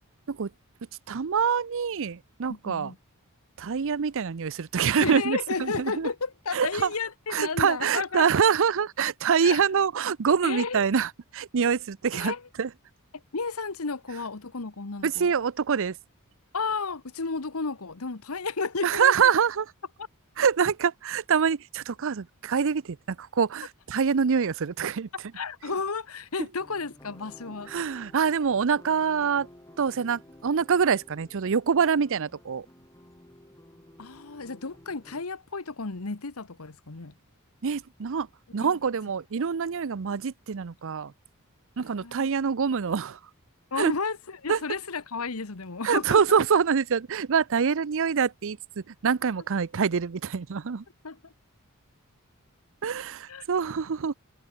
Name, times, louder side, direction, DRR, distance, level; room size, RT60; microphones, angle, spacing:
voice 1, 1.1-2.9 3.6-6.1 6.5-6.9 7.3-12.7 15.0-15.9 18.8-19.7 20.4-25.1 27.7-29.5 29.8-32.7 37.6-38.3 38.5-41.1 41.8-43.2 43.8-43.9 44.5-44.6 45.8-50.8 52.8-54.1, right 6 dB, 60° right, 0.6 m, -25 dB
voice 2, 2.5-3.0 5.0-8.2 9.4-9.6 10.4-10.9 12.1-12.4 13.3-15.3 16.5-19.1 25.3-27.7 34.0-37.1 38.6-38.8 42.0-42.3 43.7-46.4 51.0-51.2 53.3-53.4, left 4 dB, 75° left, 1.3 m, -32 dB
sound 1, 26.6-35.2, left 1 dB, 15° left, 4.3 m, -53 dB
head